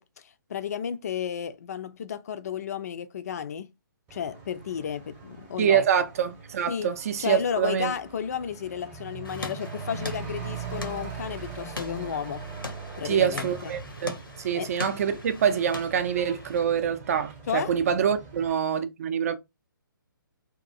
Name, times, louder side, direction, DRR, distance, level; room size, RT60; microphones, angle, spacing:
voice 1, 0.0-3.7 4.1-5.8 6.7-6.9 7.2-12.5 13.0-13.8 14.5-14.7 17.5-17.7, left 8 dB, 45° left, 0.4 m, -33 dB
Truck / Accelerating revving vroom, 4.1-18.5, right 4 dB, 15° right, 0.8 m, -41 dB
voice 2, 5.6-7.9 13.0-19.4, right 8 dB, 40° right, 0.5 m, -25 dB
sound 1, 9.2-16.6, left 3 dB, 85° left, 0.8 m, -41 dB
2.7 x 2.5 x 2.5 m
figure-of-eight pair, 135°, 11 cm